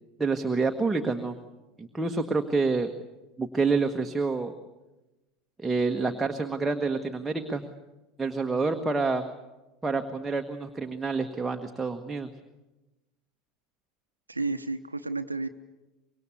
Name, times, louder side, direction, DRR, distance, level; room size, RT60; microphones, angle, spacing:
voice 1, 0.2-1.4 1.8-2.9 3.4-4.5 5.6-7.6 8.2-9.3 9.8-12.3, right 3 dB, 10° right, 4 dB, 1.5 m, -28 dB
voice 2, 14.3-15.5, right 3 dB, 85° right, 8 dB, 0.8 m, -31 dB
25.0 x 22.5 x 8.3 m, 1.1 s
figure-of-eight pair, 75°, 0 cm